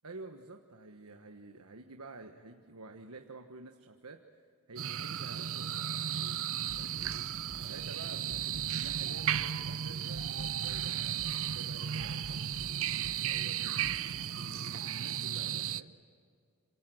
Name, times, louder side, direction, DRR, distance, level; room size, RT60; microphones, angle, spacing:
voice 1, 0.0-4.2 4.7-5.9 6.8-7.2 7.6-13.8 14.3-15.9, right 3 dB, 80° right, 5 dB, 1.4 m, -50 dB
sound 1, 4.8-15.8, right 9 dB, 65° right, 0.7 m, -35 dB
sound 2, 6.7-7.2 7.5-7.7 8.3-9.0 9.3-9.5 10.1-10.9 11.2-11.4 12.0-12.7 13.0-13.2 13.8-14.0, equal, 40° right, 3.7 m, -50 dB
27.5 x 27.0 x 7.9 m, 2.3 s
head